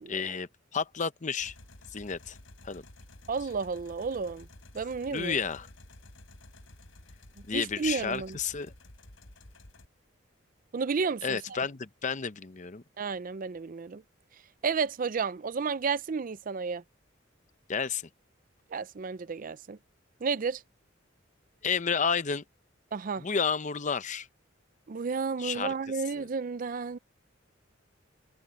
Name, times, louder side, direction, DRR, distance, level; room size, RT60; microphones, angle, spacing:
voice 1, 0.1-1.5 1.9-2.4 2.6-2.8 5.1-5.7 7.5-8.7 11.2-12.8 17.7-18.0 21.6-22.4 23.2-24.3 25.4-25.7 26.2-26.3, left 6 dB, 40° left, 0.7 m, -31 dB
sound 1, 1.4-9.9, left 1 dB, 90° left, 4.1 m, -52 dB
voice 2, 3.3-4.5 4.7-5.4 7.5-8.4 10.7-11.6 13.0-14.0 14.6-16.8 18.7-19.8 20.2-20.6 22.9-23.2 24.9-27.0, right 5 dB, 45° right, 0.5 m, -32 dB
head